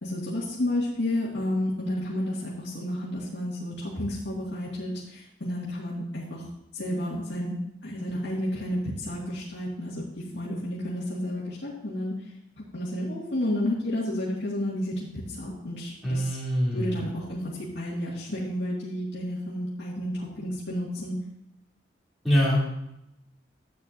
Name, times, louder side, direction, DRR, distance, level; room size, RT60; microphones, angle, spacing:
voice 1, 0.0-6.5 6.7-10.1 10.3-12.3 12.7-16.4 16.7-21.2, left 1 dB, 65° left, -7 dB, 2.2 m, -31 dB
voice 2, 16.0-16.9 22.2-22.7, equal, ahead, -8 dB, 3.2 m, -24 dB
12.5 x 9.0 x 2.7 m, 0.84 s
head